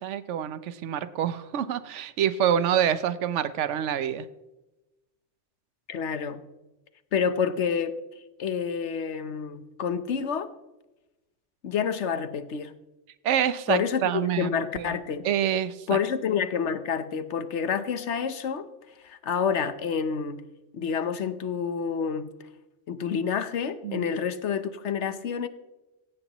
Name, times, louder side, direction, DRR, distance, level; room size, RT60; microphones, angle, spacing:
voice 1, 0.0-4.3 13.2-15.0 15.2-16.0 23.8-24.1, right 9 dB, 80° right, 14 dB, 1.0 m, -27 dB
voice 2, 5.9-6.4 7.1-7.9 8.4-10.5 11.6-12.7 13.7-15.3 15.9-18.7 19.0-20.4 20.7-22.3 22.9-25.5, left 6 dB, 75° left, 12 dB, 1.2 m, -28 dB
17.5 x 15.5 x 3.0 m, 1.0 s
omnidirectional pair, 1.2 m